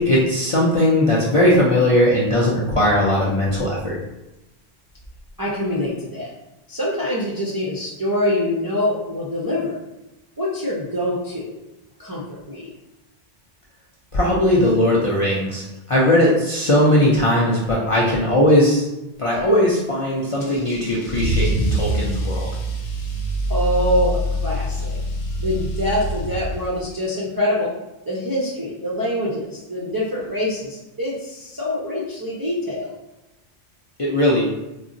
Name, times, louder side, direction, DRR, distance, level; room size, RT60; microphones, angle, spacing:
voice 1, 0.0-4.0 14.1-18.9 19.2-22.5 34.0-34.4, left 1 dB, 50° left, -6 dB, 0.4 m, -18 dB
voice 2, 5.4-6.3 6.7-9.8 10.4-11.6 12.0-12.7 23.5-25.0 25.4-27.7 28.1-32.9, left 1 dB, 35° right, -6 dB, 0.3 m, -25 dB
Car / Engine starting / Accelerating revving vroom, 20.4-26.9, right 1 dB, 85° left, 0.8 m, -25 dB
3.7 x 2.0 x 2.5 m, 0.96 s
omnidirectional pair, 1.1 m